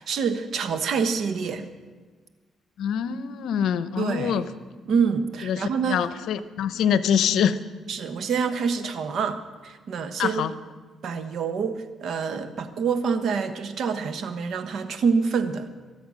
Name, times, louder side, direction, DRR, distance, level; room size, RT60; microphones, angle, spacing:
voice 1, 0.0-1.7 4.0-4.4 4.9-6.1 7.9-10.4 11.0-15.7, right 5 dB, 65° right, 9 dB, 1.2 m, -26 dB
voice 2, 2.8-4.5 5.4-7.6 10.2-10.5, left 8 dB, 80° left, 13 dB, 0.8 m, -24 dB
24.0 x 8.0 x 6.3 m, 1.4 s
cardioid pair, 90°, 0 cm